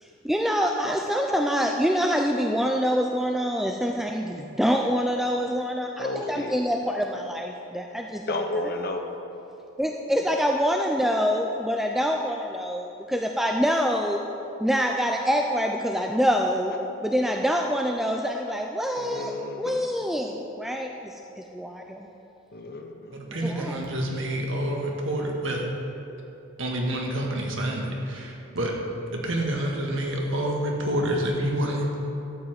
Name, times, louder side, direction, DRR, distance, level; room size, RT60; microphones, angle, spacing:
voice 1, 0.2-8.5 9.8-14.3 14.6-22.1 23.3-23.8, equal, ahead, 2 dB, 0.4 m, -26 dB
voice 2, 6.0-6.5 8.3-9.0 19.0-19.9 22.5-23.1, left 2 dB, 45° left, 5 dB, 0.9 m, -32 dB
voice 3, 23.1-25.6 26.6-28.7 29.1-31.9, right 1 dB, 65° right, 0 dB, 1.7 m, -28 dB
12.5 x 5.6 x 7.9 m, 2.9 s
head